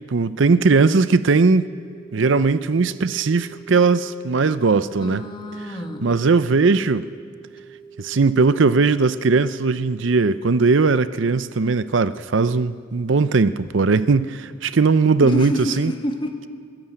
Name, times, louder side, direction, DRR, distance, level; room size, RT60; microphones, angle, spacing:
voice 1, 0.1-1.7 2.1-5.3 6.0-7.1 8.0-15.9, right 4 dB, 65° right, 0.6 m, -18 dB
sound 1, 1.3-11.3, right 6 dB, 40° right, 7.1 m, -45 dB
voice 2, 5.0-6.1 15.2-16.5, equal, 25° left, 1.8 m, -28 dB
23.0 x 16.5 x 8.9 m
head